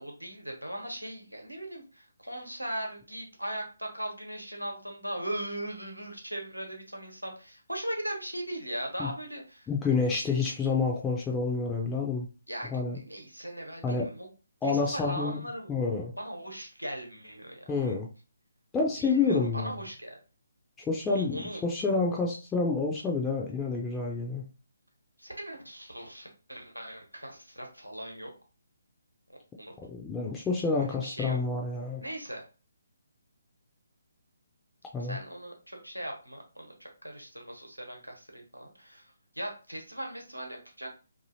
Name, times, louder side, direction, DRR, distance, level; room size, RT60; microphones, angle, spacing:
voice 1, 0.0-9.7 12.5-14.3 14.6-15.8 16.2-18.0 19.0-20.2 21.1-21.6 25.2-28.3 29.6-29.7 30.8-31.4 32.0-32.4 35.0-40.9, right 1 dB, 90° right, 2 dB, 1.0 m, -39 dB
voice 2, 9.7-12.3 12.7-13.0 13.8-14.1 14.6-15.4 15.7-16.1 17.7-18.1 18.7-19.7 20.9-24.4 29.9-32.0 34.9-35.2, left 4 dB, 10° left, -1 dB, 0.4 m, -28 dB
2.6 x 2.6 x 2.7 m, 0.33 s
figure-of-eight pair, 140°, 0 cm